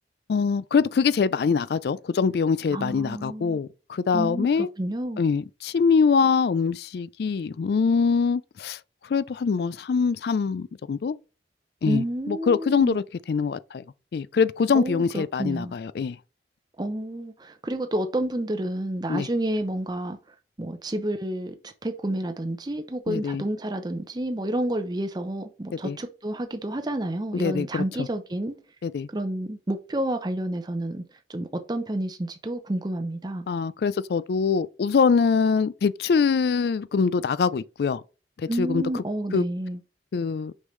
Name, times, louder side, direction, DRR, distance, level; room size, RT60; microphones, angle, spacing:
voice 1, 0.3-4.7 5.2-8.8 9.1-11.2 11.8-13.8 14.1-16.2 19.1-19.3 23.1-23.4 25.8-26.0 27.3-27.8 28.8-29.1 33.5-38.0 38.4-38.8 39.3-39.4 40.1-40.5, left 5 dB, 60° left, 0.3 m, -24 dB
voice 2, 2.7-3.6 4.1-5.2 11.8-13.0 14.7-15.7 16.8-20.2 20.6-28.5 29.1-31.0 31.3-33.5 38.5-39.8, right 1 dB, 25° right, 0.6 m, -30 dB
6.5 x 5.4 x 3.1 m
head